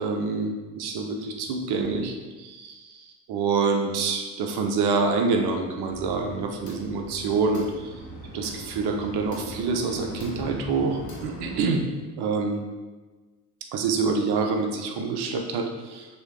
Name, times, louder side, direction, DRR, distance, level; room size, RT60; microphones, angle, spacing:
voice 1, 0.0-7.9 8.3-11.9 12.2-12.6 13.7-16.1, right 4 dB, 55° right, 4 dB, 1.0 m, -26 dB
sound 1, 5.9-11.6, equal, 90° left, 1.1 m, -40 dB
6.5 x 3.1 x 4.8 m, 1.3 s
figure-of-eight pair, 45°, 47 cm